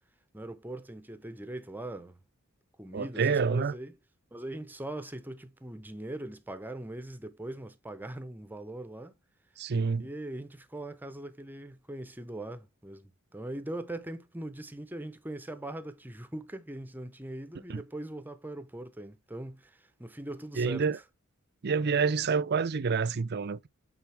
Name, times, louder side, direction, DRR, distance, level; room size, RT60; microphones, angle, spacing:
voice 1, 0.3-2.2 2.8-4.0 4.3-9.2 10.0-20.8, right 1 dB, 10° right, 0.7 m, -41 dB
voice 2, 2.9-3.7 9.6-10.1 17.7-17.8 20.6-21.0 21.6-23.7, right 5 dB, 50° right, 0.5 m, -28 dB
8.5 x 4.1 x 3.4 m
head